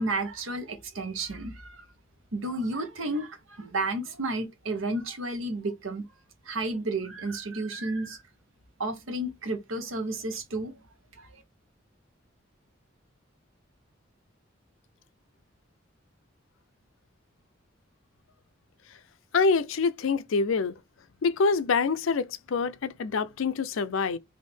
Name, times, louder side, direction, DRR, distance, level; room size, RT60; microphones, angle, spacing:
voice 1, 0.0-1.8 2.3-6.0 6.5-8.2 8.8-10.7, right 2 dB, 85° right, 1.0 m, -32 dB
voice 2, 19.3-20.8 21.2-24.2, left 4 dB, 85° left, 0.5 m, -26 dB
3.5 x 2.7 x 4.4 m
head